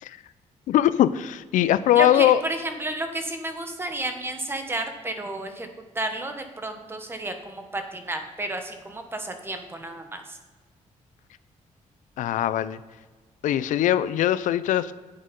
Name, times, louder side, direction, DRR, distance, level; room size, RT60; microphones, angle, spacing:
voice 1, 0.7-2.4 12.2-12.8 13.4-14.9, left 12 dB, 80° left, 15 dB, 0.4 m, -21 dB
voice 2, 1.9-5.7 5.9-10.4, right 1 dB, 20° right, 6 dB, 1.2 m, -31 dB
8.9 x 7.2 x 5.3 m, 1.3 s
cardioid pair, 125°, 13 cm